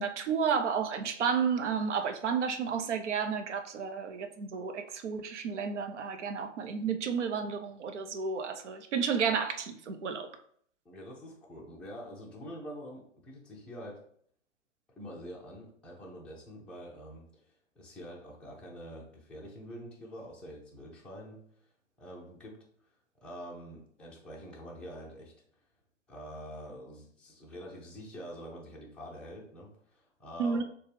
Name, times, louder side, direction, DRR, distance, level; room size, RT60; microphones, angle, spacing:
voice 1, 0.0-10.3 30.4-30.6, right 6 dB, 65° right, 7 dB, 0.7 m, -31 dB
voice 2, 10.8-14.0 15.0-21.4 22.0-22.6 23.2-25.3 26.1-30.6, equal, 5° left, -4 dB, 0.6 m, -46 dB
6.3 x 2.3 x 3.4 m, 0.62 s
figure-of-eight pair, 120°, 38 cm